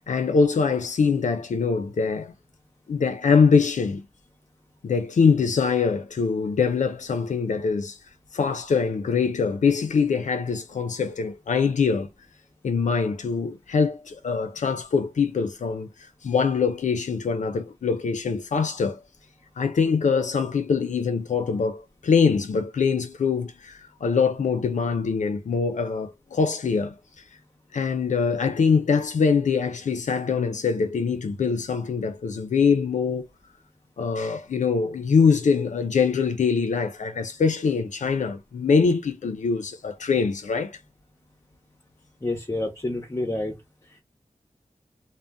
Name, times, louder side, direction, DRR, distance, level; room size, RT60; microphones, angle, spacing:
voice 1, 0.1-2.3 2.9-4.0 4.8-8.0 8.3-12.1 12.6-19.0 19.6-27.0 27.7-33.3 34.0-40.8, left 5 dB, 85° left, 0.4 m, -23 dB
voice 2, 42.2-43.6 43.9-44.0, left 2 dB, 25° left, 0.8 m, -28 dB
2.6 x 2.0 x 3.3 m
wide cardioid pair, 65°, 12 cm